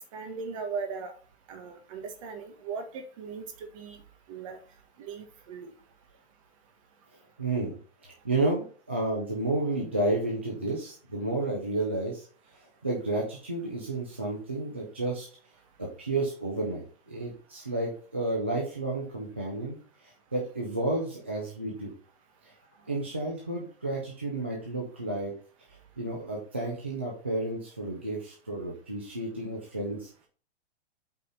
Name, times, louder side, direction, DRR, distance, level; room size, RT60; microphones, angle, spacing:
voice 1, 0.1-1.1 1.5-3.4 3.7-4.0 4.3-4.6 5.0-5.7, right 5 dB, 30° right, 6 dB, 1.5 m, -38 dB
voice 2, 7.4-12.3 12.5-15.3 15.8-21.9 22.4-22.5 22.9-25.3 26.0-30.1, right 2 dB, 10° right, -3 dB, 0.3 m, -31 dB
8.1 x 4.2 x 5.4 m, 0.41 s
hypercardioid pair, 180°, 32 cm